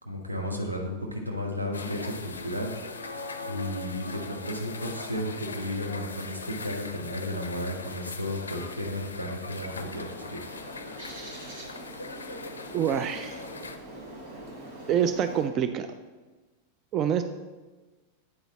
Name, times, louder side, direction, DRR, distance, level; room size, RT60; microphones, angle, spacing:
voice 1, 0.0-2.7 3.4-10.6, left 1 dB, 85° right, 1 dB, 1.1 m, -33 dB
sound 1, 1.7-13.8, left 3 dB, 75° left, 0.4 m, -40 dB
Bird, 9.5-15.5, right 1 dB, 60° right, 2.0 m, -43 dB
voice 2, 12.7-13.4 14.9-15.9 16.9-17.2, right 9 dB, 35° right, 9 dB, 0.3 m, -26 dB
8.6 x 4.0 x 4.0 m, 1.3 s
figure-of-eight pair, 90°, 0 cm